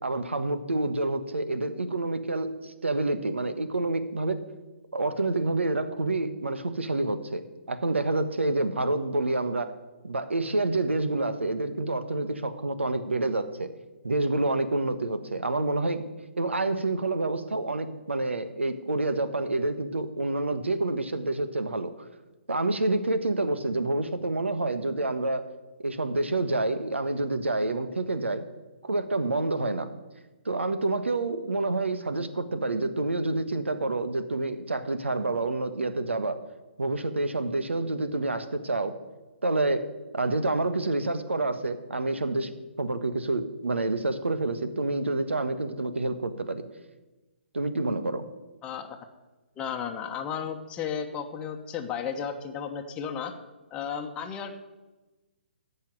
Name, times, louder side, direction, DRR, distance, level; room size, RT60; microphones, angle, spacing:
voice 1, 0.0-4.4 4.9-9.7 10.0-13.7 14.0-16.0 16.4-21.9 22.5-25.4 25.8-28.4 28.8-29.9 30.4-36.4 36.8-38.9 39.4-39.9 40.1-42.5 42.8-46.6 47.5-48.2, right 2 dB, 75° right, 11 dB, 1.4 m, -28 dB
voice 2, 48.6-49.0 49.6-53.3 53.7-54.5, left 7 dB, 15° left, 3 dB, 1.1 m, -34 dB
14.5 x 5.6 x 9.2 m, 1.1 s
figure-of-eight pair, 130°, 6 cm